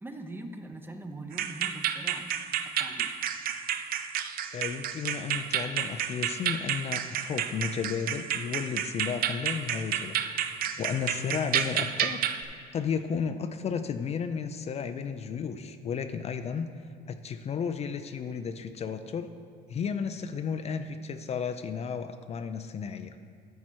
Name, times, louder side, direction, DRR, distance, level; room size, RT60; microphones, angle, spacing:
voice 1, 0.0-2.3 2.8-3.2, right 2 dB, 10° right, 6 dB, 0.6 m, -42 dB
sound 1, 1.3-12.4, right 9 dB, 60° right, 0.5 m, -31 dB
voice 2, 4.5-10.2 10.8-12.2 12.7-16.7 17.1-19.3 19.7-23.1, left 6 dB, 40° left, 8 dB, 0.4 m, -33 dB
13.0 x 4.6 x 4.5 m, 2.1 s
cardioid pair, 110°, 17 cm